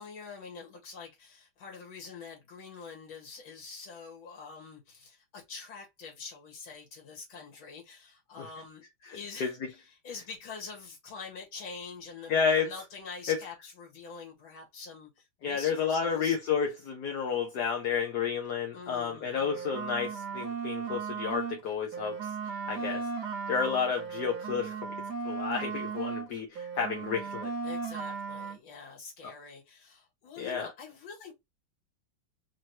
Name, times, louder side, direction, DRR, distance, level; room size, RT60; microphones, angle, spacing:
voice 1, 0.0-16.4 18.7-19.3 22.7-23.1 27.6-31.3, left 5 dB, 85° left, 2.6 m, -45 dB
voice 2, 9.0-9.5 12.3-12.7 13.3-13.4 15.4-23.0 23.5-24.9 25.2-27.5 30.4-30.7, left 6 dB, 60° left, 1.3 m, -31 dB
sound 1, 19.3-21.6 21.9-26.3 26.5-28.6, right 5 dB, 60° right, 1.4 m, -36 dB
4.6 x 2.9 x 2.9 m
omnidirectional pair, 2.2 m